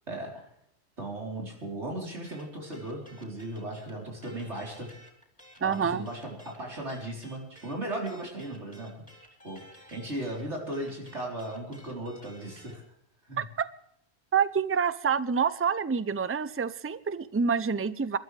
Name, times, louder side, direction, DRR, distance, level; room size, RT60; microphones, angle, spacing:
voice 1, 0.1-0.5 1.0-4.9 5.6-9.0 9.4-12.8 13.3-13.4, right 1 dB, 85° right, -2 dB, 4.4 m, -37 dB
sound 1, 2.2-12.8, equal, 5° left, 3.6 m, -54 dB
voice 2, 5.6-6.1 13.4-13.7 14.3-18.2, right 6 dB, 20° right, 15 dB, 0.4 m, -27 dB
27.0 x 13.0 x 3.4 m, 0.72 s
omnidirectional pair, 1.1 m